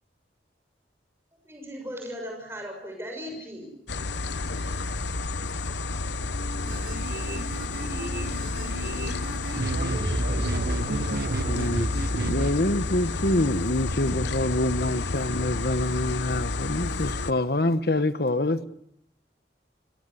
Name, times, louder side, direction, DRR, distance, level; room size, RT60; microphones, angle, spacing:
voice 1, 1.4-3.7, equal, 15° right, 6.7 m, -37 dB
sound 1, 3.9-17.3, left 3 dB, 80° left, 1.0 m, -31 dB
sound 2, 6.7-12.5, right 2 dB, 55° right, 1.0 m, -31 dB
voice 2, 9.6-11.8, right 1 dB, 80° right, 6.7 m, -37 dB
voice 3, 11.5-11.9 12.2-18.7, left 1 dB, 60° left, 1.2 m, -26 dB
29.5 x 18.0 x 8.3 m
head